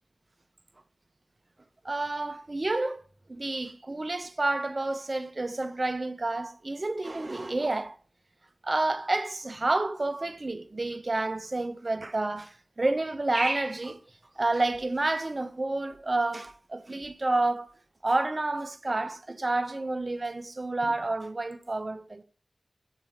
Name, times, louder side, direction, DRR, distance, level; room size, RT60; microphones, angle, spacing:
voice 1, 1.8-3.0 3.3-8.0 8.6-14.0 14.4-17.7 18.0-22.2, right 2 dB, 45° right, 0.6 m, -29 dB
8.0 x 2.9 x 5.0 m
cardioid pair, 45°, 0 cm